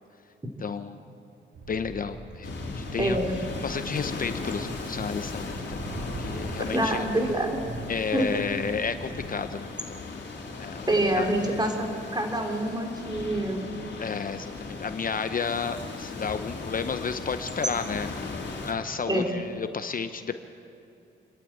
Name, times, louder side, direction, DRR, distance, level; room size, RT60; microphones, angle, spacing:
voice 1, 0.6-1.0 1.7-3.2 3.6-7.1 7.9-10.9 11.2-11.3 14.0-18.3 18.6-20.4, left 6 dB, 45° left, 10 dB, 0.8 m, -32 dB
sound 1, 1.5-9.3, right 2 dB, 85° right, 2.7 m, -41 dB
sound 2, 2.4-18.7, left 3 dB, 60° left, 3.7 m, -37 dB
voice 2, 3.0-3.3 6.7-7.6 8.1-8.4 10.9-13.7 19.1-19.2, right 1 dB, 20° right, 3 dB, 3.2 m, -26 dB
27.0 x 11.5 x 8.8 m, 2.5 s
cardioid pair, 90°, 21 cm